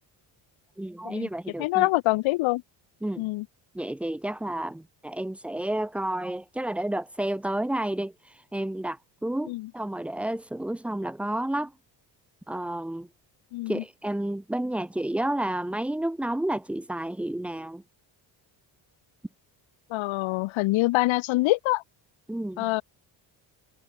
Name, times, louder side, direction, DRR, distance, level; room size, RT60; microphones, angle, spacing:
voice 1, 0.8-1.9 3.0-3.3 3.7-11.7 12.5-13.1 13.7-17.8 22.3-22.7, right 1 dB, 5° right, 0.3 m, -31 dB
voice 2, 1.6-2.6 3.2-3.5 9.5-9.7 13.5-13.8 19.9-21.8 22.6-22.8, left 19 dB, 80° left, 0.8 m, -25 dB
cardioid pair, 80°, 47 cm